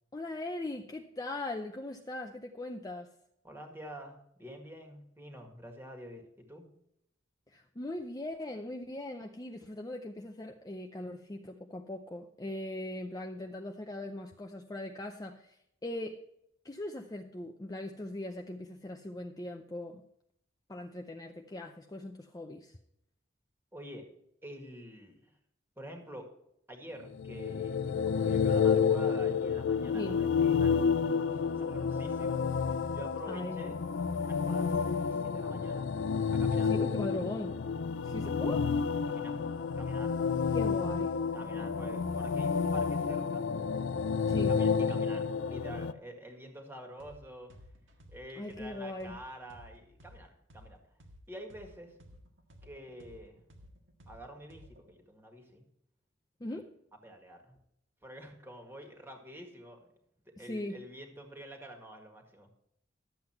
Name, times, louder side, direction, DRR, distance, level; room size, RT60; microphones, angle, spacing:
voice 1, 0.1-3.1 7.5-15.6 15.8-16.2 16.6-20.0 20.7-22.8 29.9-30.2 33.3-33.6 36.7-37.6 38.0-38.7 40.5-41.2 44.2-44.6 48.4-49.2 56.4-56.7 60.4-60.8, left 1 dB, 20° left, 3 dB, 0.5 m, -40 dB
voice 2, 3.4-6.7 23.7-24.1 24.4-25.3 25.8-26.3 26.7-30.8 31.3-33.8 34.2-35.9 36.3-36.7 38.1-38.2 39.1-39.4 39.8-40.2 41.3-43.5 44.4-47.5 48.1-50.8 51.3-52.0 52.6-53.4 54.1-55.6 56.5-56.6 57.0-57.6 58.0-59.9 60.4-62.5, equal, 10° right, 3 dB, 1.8 m, -48 dB
sound 1, 27.1-45.9, left 6 dB, 70° left, 0.4 m, -30 dB
sound 2, 47.0-47.2 47.5-51.2 51.5-54.9, equal, 80° right, 1.7 m, -55 dB
12.0 x 7.7 x 4.4 m, 0.77 s
head